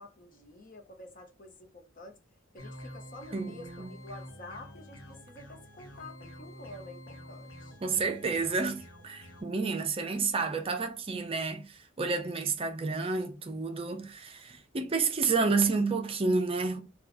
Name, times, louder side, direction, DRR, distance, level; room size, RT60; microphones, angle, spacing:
voice 1, 0.0-2.2 2.5-7.8, left 2 dB, 40° left, 0.9 m, -49 dB
sound 1, 2.6-9.4, equal, 75° left, 1.3 m, -48 dB
voice 2, 3.3-3.9 7.8-16.8, right 4 dB, 25° right, 0.5 m, -30 dB
4.0 x 2.3 x 4.2 m
head